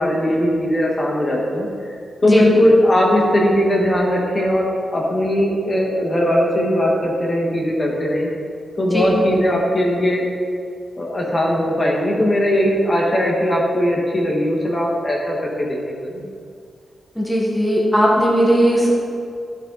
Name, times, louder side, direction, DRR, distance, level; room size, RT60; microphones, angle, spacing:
voice 1, 0.0-2.0 2.2-8.3 8.8-10.3 11.0-16.3, left 1 dB, 30° left, -2 dB, 1.7 m, -19 dB
voice 2, 17.1-18.9, equal, 5° left, -4 dB, 1.5 m, -17 dB
12.5 x 7.9 x 4.1 m, 2.3 s
wide cardioid pair, 140°, 0 cm